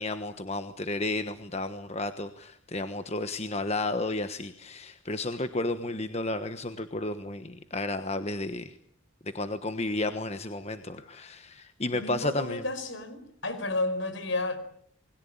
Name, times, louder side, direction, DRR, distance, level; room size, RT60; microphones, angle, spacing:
voice 1, 0.0-8.7 9.2-12.6, left 2 dB, 30° left, 9 dB, 1.2 m, -32 dB
voice 2, 11.9-14.6, left 2 dB, 70° left, 12 dB, 4.9 m, -32 dB
29.0 x 21.5 x 8.8 m, 0.67 s
head